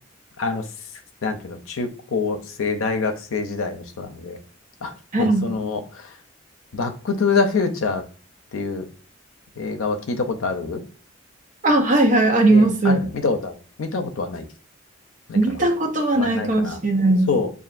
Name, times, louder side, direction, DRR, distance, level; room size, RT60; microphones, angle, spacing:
voice 1, 1.2-4.4 4.8-4.9 5.2-5.8 6.7-8.0 8.5-8.9 9.6-10.8 12.5-14.4 15.3-15.4 16.2-16.8 17.3-17.5, left 4 dB, 85° left, 6 dB, 0.6 m, -25 dB
voice 2, 5.1-5.5 11.6-13.0 15.3-17.3, right 2 dB, 40° right, 2 dB, 0.7 m, -18 dB
6.7 x 2.5 x 2.5 m, 0.40 s
head